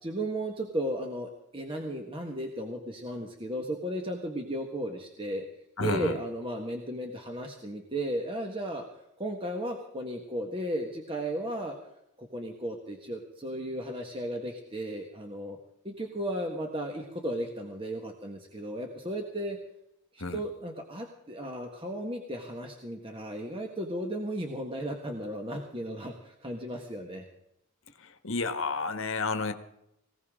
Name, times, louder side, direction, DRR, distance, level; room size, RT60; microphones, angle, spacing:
voice 1, 0.0-5.4 5.8-8.9 9.2-11.7 12.2-15.6 15.8-19.6 20.1-27.2, right 1 dB, 25° right, 2 dB, 1.6 m, -35 dB
voice 2, 5.8-6.1 20.2-20.4 28.2-29.5, left 3 dB, 65° left, 8 dB, 1.6 m, -30 dB
20.0 x 18.0 x 3.7 m, 0.82 s
head